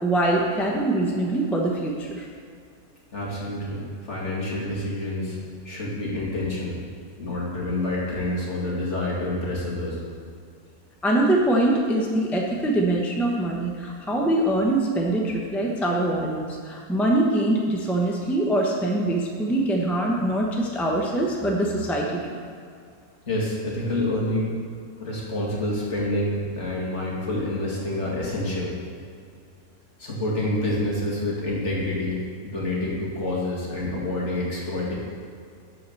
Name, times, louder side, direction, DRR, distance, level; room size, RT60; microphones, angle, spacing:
voice 1, 0.0-2.3 11.0-22.4, right 1 dB, ahead, -1 dB, 0.8 m, -23 dB
voice 2, 3.1-6.8 7.2-10.0 23.3-24.5 25.0-28.7 30.0-34.9, left 1 dB, 50° left, -5 dB, 2.4 m, -28 dB
11.5 x 4.8 x 6.9 m, 2.3 s
omnidirectional pair, 1.5 m